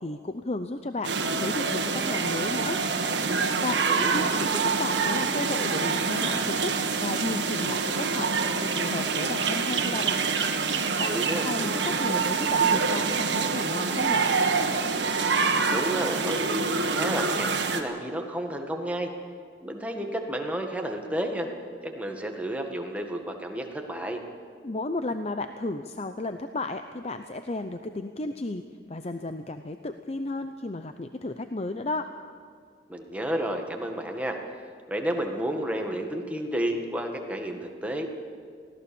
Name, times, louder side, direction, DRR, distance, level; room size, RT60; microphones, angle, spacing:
voice 1, 0.0-2.8 3.6-3.7 4.1-6.7 7.0-10.2 11.0-11.1 11.4-14.3 24.6-32.1, left 2 dB, 35° left, 8 dB, 0.7 m, -33 dB
sound 1, 1.0-17.8, right 4 dB, 85° right, 1.7 m, -26 dB
voice 2, 11.0-11.5 15.7-19.1 19.6-21.5 21.8-24.2 32.9-34.4 34.9-38.1, right 1 dB, 10° right, 2 dB, 1.8 m, -31 dB
24.0 x 17.0 x 7.1 m, 2.2 s
head